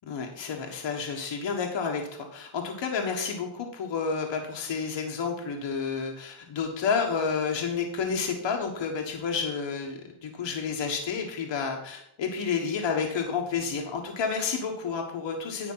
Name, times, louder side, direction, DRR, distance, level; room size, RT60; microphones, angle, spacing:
voice 1, 0.0-15.7, left 5 dB, 65° left, 2 dB, 1.6 m, -30 dB
10.5 x 5.3 x 5.6 m, 0.74 s
wide cardioid pair, 175°, 48 cm